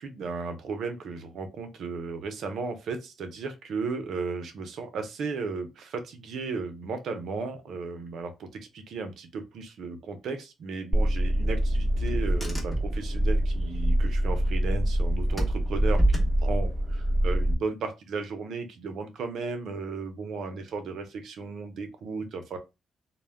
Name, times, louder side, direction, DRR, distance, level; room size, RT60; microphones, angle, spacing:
voice 1, 0.0-22.6, right 4 dB, 70° right, 7 dB, 0.6 m, -35 dB
Car / Engine, 10.9-17.5, equal, ahead, 0.9 m, -25 dB
2.1 x 2.1 x 3.4 m, 0.25 s
cardioid pair, 90°, 0 cm